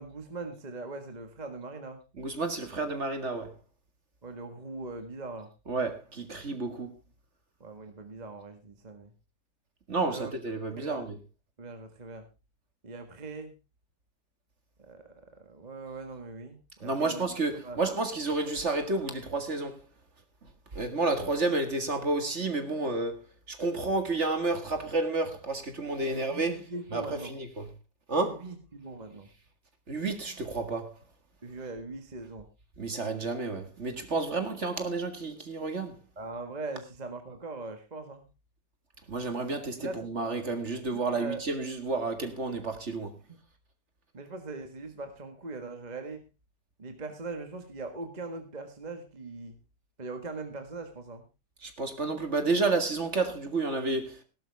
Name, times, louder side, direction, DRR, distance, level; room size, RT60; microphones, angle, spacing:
voice 1, 0.0-2.0 4.2-5.5 7.6-9.1 10.1-10.3 10.8-11.1 11.6-12.3 12.8-13.6 14.8-17.3 17.5-17.8 26.0-27.3 28.1-29.3 31.4-32.5 36.2-38.2 39.4-39.5 39.8-40.1 40.8-41.4 43.3-43.4 44.1-46.3 46.8-49.6 50.0-51.2, right 3 dB, 25° right, 1.6 m, -41 dB
voice 2, 2.2-3.5 5.7-6.9 9.9-11.2 16.8-19.8 20.7-23.2 23.5-26.6 26.9-27.7 28.1-28.4 29.9-31.0 32.8-36.0 39.1-43.1 51.6-54.2, right 3 dB, 40° right, 2.2 m, -30 dB
17.0 x 12.0 x 3.5 m
omnidirectional pair, 1.8 m